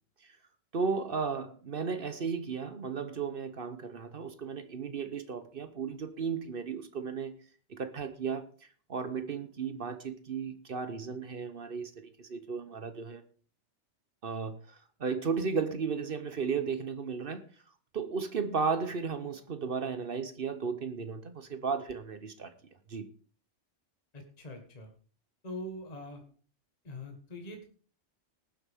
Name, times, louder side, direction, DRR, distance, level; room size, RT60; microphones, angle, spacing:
voice 1, 0.7-7.3 7.7-8.5 8.9-13.2 14.2-17.4 17.9-22.5 22.9-23.1, right 5 dB, 55° right, 10 dB, 1.0 m, -34 dB
voice 2, 24.1-24.9 25.4-26.2 26.8-27.7, left 1 dB, 35° left, 3 dB, 1.6 m, -43 dB
19.5 x 7.8 x 3.6 m, 0.42 s
omnidirectional pair, 1.2 m